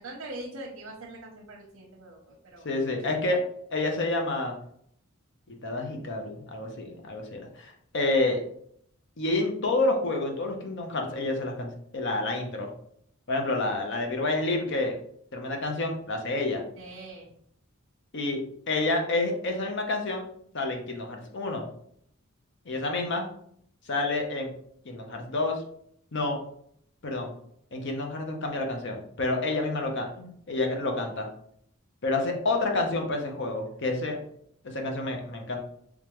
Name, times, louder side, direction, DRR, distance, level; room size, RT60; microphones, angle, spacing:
voice 1, 0.0-2.7 16.8-17.3, right 1 dB, 80° right, -2 dB, 0.8 m, -42 dB
voice 2, 2.6-3.4 3.7-4.6 5.6-8.4 9.2-12.7 13.3-15.0 15.3-16.6 18.1-20.3 20.5-21.7 22.7-23.2 23.9-24.5 24.8-25.6 26.1-26.4 27.0-27.3 27.7-31.3 32.0-34.2 34.6-35.6, left 2 dB, 60° left, 3 dB, 0.8 m, -29 dB
3.6 x 3.5 x 3.1 m, 0.67 s
head